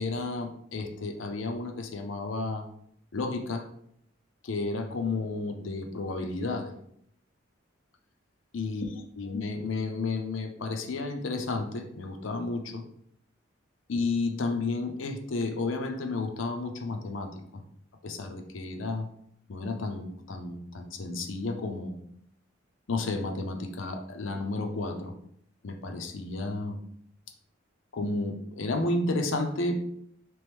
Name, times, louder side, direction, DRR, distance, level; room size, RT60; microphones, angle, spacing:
voice 1, 0.0-2.7 3.1-3.7 4.4-6.7 8.5-12.8 13.9-17.6 18.0-19.1 19.5-22.0 22.9-25.2 25.6-26.8 27.9-29.8, left 3 dB, 70° left, 5 dB, 0.6 m, -32 dB
3.5 x 3.1 x 3.4 m, 0.70 s
head